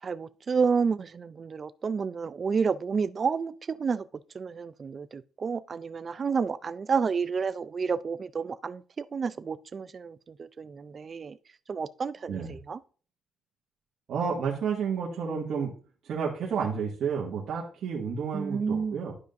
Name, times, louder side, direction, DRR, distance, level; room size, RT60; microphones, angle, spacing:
voice 1, 0.0-4.1 4.3-11.4 11.7-12.8 18.3-19.0, right 5 dB, 40° right, 0.4 m, -30 dB
voice 2, 14.1-15.7 16.0-19.1, right 6 dB, 60° right, 1.7 m, -31 dB
11.5 x 5.0 x 2.6 m
cardioid pair, 105°, 0 cm